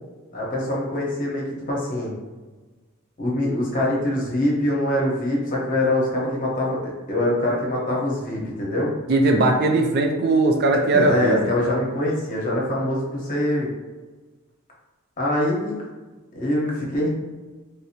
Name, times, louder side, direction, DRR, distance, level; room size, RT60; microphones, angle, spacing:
voice 1, 0.3-2.1 3.2-8.9 10.9-13.7 15.2-15.8 16.3-17.1, left 1 dB, 40° left, -4 dB, 0.9 m, -24 dB
voice 2, 9.1-11.5, right 2 dB, 50° right, 3 dB, 0.4 m, -19 dB
3.5 x 2.6 x 2.8 m, 1.2 s
head